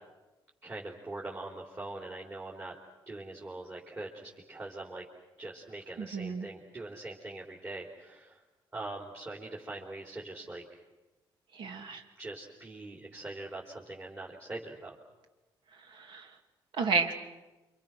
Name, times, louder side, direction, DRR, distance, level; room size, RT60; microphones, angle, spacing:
voice 1, 0.6-2.7 3.1-5.0 5.4-8.4 8.7-10.8 12.2-15.0, right 2 dB, 25° right, -3 dB, 4.0 m, -42 dB
voice 2, 6.0-6.5 11.5-12.0 15.9-16.3 16.8-17.1, right 5 dB, 65° right, 5 dB, 2.8 m, -31 dB
29.0 x 26.0 x 6.2 m, 1.1 s
cardioid pair, 110°, 9 cm